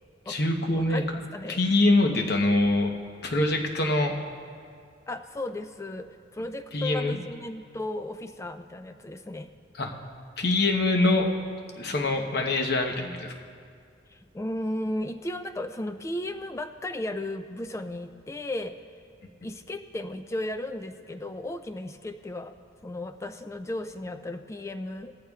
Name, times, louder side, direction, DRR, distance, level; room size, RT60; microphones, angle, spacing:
voice 1, 0.3-1.0 1.5-2.9 3.2-4.1 6.7-7.2 9.8-9.9 10.4-11.3 11.8-13.3, left 2 dB, 55° left, 3 dB, 1.0 m, -24 dB
voice 2, 0.8-1.1 1.3-1.6 5.1-9.5 14.1-18.8 19.4-22.5 22.8-25.2, left 1 dB, 15° left, 8 dB, 0.3 m, -35 dB
18.0 x 14.0 x 2.4 m, 2.2 s
head